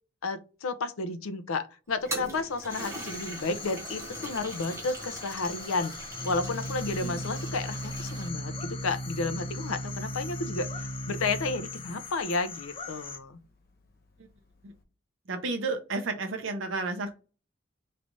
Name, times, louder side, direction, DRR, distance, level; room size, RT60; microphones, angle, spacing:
voice 1, 0.2-5.9 6.2-13.4, left 3 dB, 85° left, 0.6 m, -32 dB
Toilet flush, 1.9-8.3, right 2 dB, 15° right, 0.8 m, -42 dB
sound 1, 2.7-13.2, left 5 dB, 25° left, 0.6 m, -42 dB
Organ, 4.9-14.8, right 1 dB, 50° left, 0.9 m, -39 dB
voice 2, 15.3-17.1, right 3 dB, 65° right, 0.7 m, -32 dB
4.6 x 3.2 x 2.6 m
head